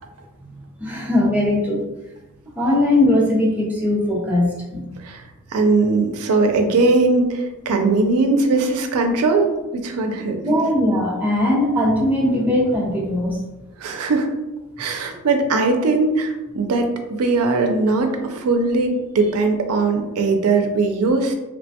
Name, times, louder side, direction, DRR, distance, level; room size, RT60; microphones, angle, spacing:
voice 1, 0.8-1.8 2.6-4.9 10.4-13.5, left 1 dB, 5° right, -4 dB, 0.5 m, -19 dB
voice 2, 5.5-9.5 9.8-10.4 13.8-14.3 14.8-21.3, right 3 dB, 85° right, 5 dB, 0.4 m, -19 dB
3.0 x 2.2 x 2.7 m, 1.1 s
head